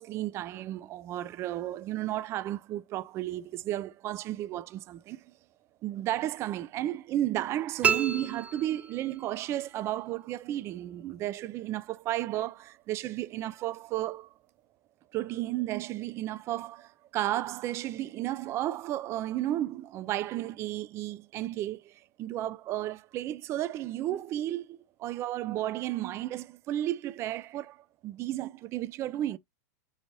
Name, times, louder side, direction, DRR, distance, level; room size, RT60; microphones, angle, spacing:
voice 1, 0.0-5.2 5.8-14.3 15.1-29.4, right 13 dB, 30° right, 0.3 m, -33 dB
sound 1, 7.8-9.4, right 8 dB, 15° right, 0.7 m, -30 dB
5.0 x 3.2 x 2.6 m
supercardioid pair, 135°, 9 cm